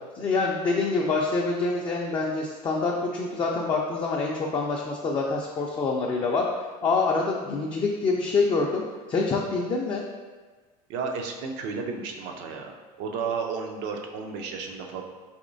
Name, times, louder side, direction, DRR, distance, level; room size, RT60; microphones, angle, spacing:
voice 1, 0.1-6.4 6.8-8.8 9.1-10.0, left 3 dB, 25° left, -2 dB, 0.4 m, -26 dB
voice 2, 10.9-12.7 13.0-15.0, right 5 dB, 60° right, 3 dB, 0.6 m, -32 dB
4.2 x 2.9 x 2.6 m, 1.3 s
supercardioid pair, 100°, 20 cm